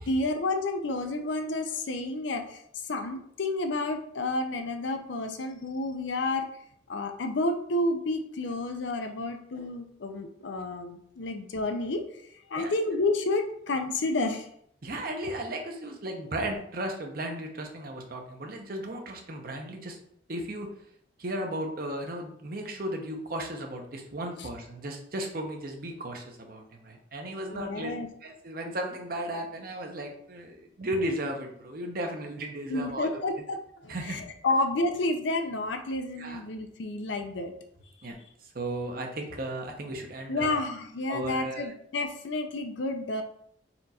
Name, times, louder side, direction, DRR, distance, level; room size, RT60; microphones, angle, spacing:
voice 1, 0.1-6.5 6.9-12.0 12.5-14.5 27.5-28.1 32.7-37.5 40.3-43.2, left 2 dB, 75° left, 6 dB, 0.5 m, -30 dB
voice 2, 14.8-20.0 20.3-20.7 21.2-27.9 28.2-33.2 33.9-34.2 36.2-36.4 38.0-40.7 41.1-41.7, right 1 dB, 50° right, 3 dB, 0.8 m, -35 dB
4.3 x 2.5 x 4.1 m, 0.67 s
head